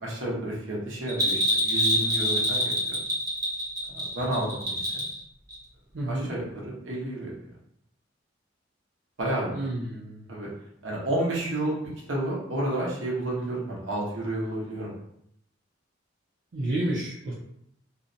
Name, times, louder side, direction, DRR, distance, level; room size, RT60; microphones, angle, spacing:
voice 1, 0.0-3.0 4.1-5.0 6.1-7.3 9.2-9.6 10.3-10.5 10.8-11.7 12.1-14.9, right 1 dB, 90° right, -4 dB, 0.9 m, -30 dB
Bell, 1.1-5.2 5.5-5.6, equal, 20° right, 0.7 m, -26 dB
voice 2, 5.9-6.3 9.5-10.2 16.5-17.3, right 1 dB, 70° right, -6 dB, 0.5 m, -30 dB
2.6 x 2.1 x 2.6 m, 0.73 s
head